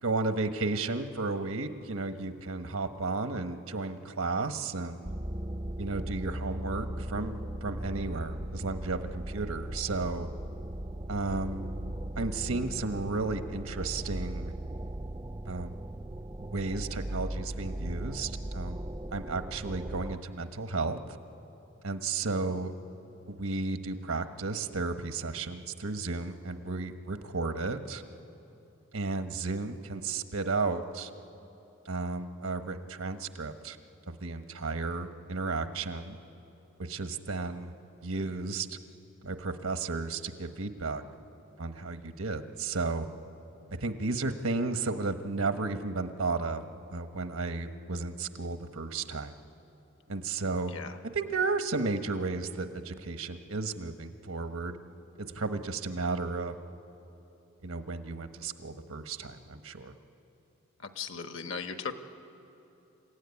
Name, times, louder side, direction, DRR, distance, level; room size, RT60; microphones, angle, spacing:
voice 1, 0.0-5.1 5.8-10.3 11.1-11.7 12.1-14.5 15.4-15.8 16.4-18.8 19.1-21.2 21.8-22.7 23.3-28.0 28.9-31.1 31.8-33.8 34.1-36.2 36.8-37.7 38.0-38.8 39.2-41.0 41.6-43.1 43.7-46.6 46.9-49.3 50.1-50.7 51.1-54.8 55.2-56.6 57.6-59.9, right 3 dB, 80° right, 8 dB, 1.2 m, -33 dB
sound 1, 5.0-20.2, right 1 dB, 15° right, 0.5 m, -38 dB
voice 2, 60.8-61.9, left 5 dB, 60° left, 7 dB, 1.3 m, -37 dB
28.0 x 15.5 x 9.8 m, 2.9 s
head